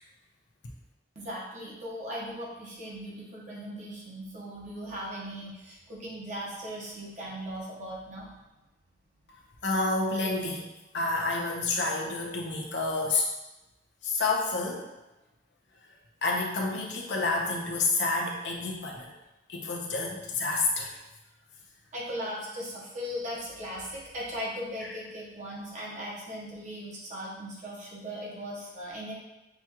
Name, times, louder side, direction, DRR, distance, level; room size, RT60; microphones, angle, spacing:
voice 1, 1.1-8.3 21.9-29.1, equal, 45° right, -5 dB, 1.0 m, -38 dB
voice 2, 9.3-10.6 10.9-13.3 14.0-14.8 16.2-19.1 19.5-21.0, left 3 dB, 75° left, -1 dB, 0.8 m, -29 dB
5.9 x 2.4 x 2.9 m, 1.0 s
head